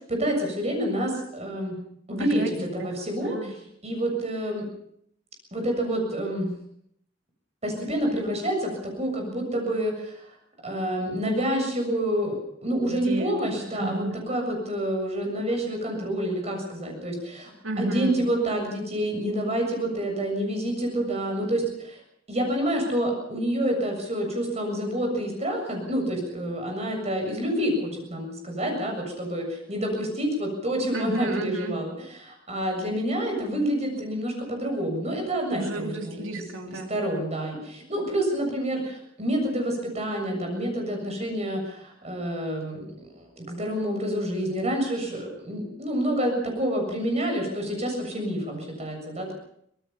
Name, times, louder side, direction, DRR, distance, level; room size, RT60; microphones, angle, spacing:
voice 1, 0.1-1.8 2.1-2.4 2.7-3.4 3.8-4.6 5.5-6.5 7.6-10.3 10.6-17.5 17.8-22.0 22.3-31.9 32.2-36.2 36.7-49.3, right 1 dB, 35° right, 2 dB, 7.1 m, -28 dB
voice 2, 2.2-3.5 12.8-14.2 17.6-18.2 30.9-31.7 35.5-36.9, right 1 dB, 80° right, 3 dB, 3.3 m, -32 dB
24.5 x 19.0 x 5.8 m, 0.71 s
head